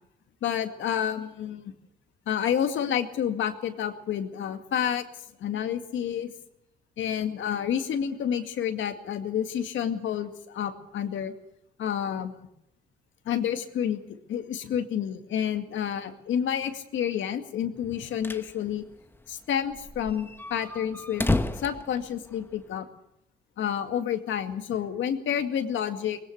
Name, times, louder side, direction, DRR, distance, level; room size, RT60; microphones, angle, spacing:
voice 1, 0.4-1.7 2.3-5.0 5.4-6.3 7.0-11.3 11.8-12.4 13.3-18.8 19.3-21.2 21.6-22.9 23.6-26.2, left 9 dB, 75° left, 7 dB, 2.1 m, -29 dB
sound 1, 17.9-18.5 18.8-18.9 19.1-19.2 19.7-22.7, left 2 dB, 10° left, 1.2 m, -31 dB
20.0 x 17.0 x 8.0 m, 0.80 s
cardioid pair, 90°, 20 cm